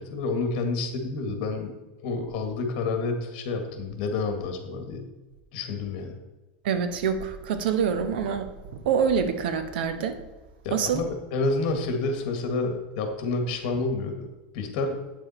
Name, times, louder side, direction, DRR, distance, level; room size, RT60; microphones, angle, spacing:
voice 1, 0.0-1.7 2.0-5.1 5.5-6.2 10.6-14.3 14.5-15.0, left 3 dB, 55° left, 5 dB, 1.9 m, -29 dB
voice 2, 6.6-10.2 10.7-11.0, right 7 dB, 75° right, 9 dB, 1.1 m, -26 dB
9.2 x 7.2 x 4.3 m, 1.2 s
supercardioid pair, 155°, 5 cm